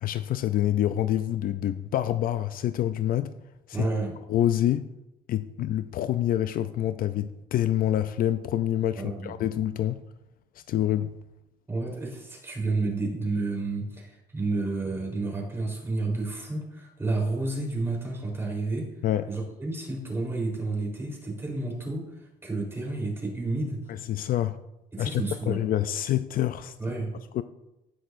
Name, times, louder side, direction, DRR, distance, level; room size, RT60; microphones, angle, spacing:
voice 1, 0.0-3.3 4.3-4.8 5.3-10.0 10.7-11.1 19.0-19.2 24.1-24.6 25.0-26.7 27.3-27.4, left 12 dB, 60° left, 0.5 m, -26 dB
voice 2, 3.7-4.2 8.9-9.3 11.7-18.9 19.3-22.1 22.4-23.8 24.9-25.6 26.8-27.1, right 3 dB, 15° right, 3.8 m, -30 dB
17.0 x 6.4 x 2.6 m
cardioid pair, 110°, 17 cm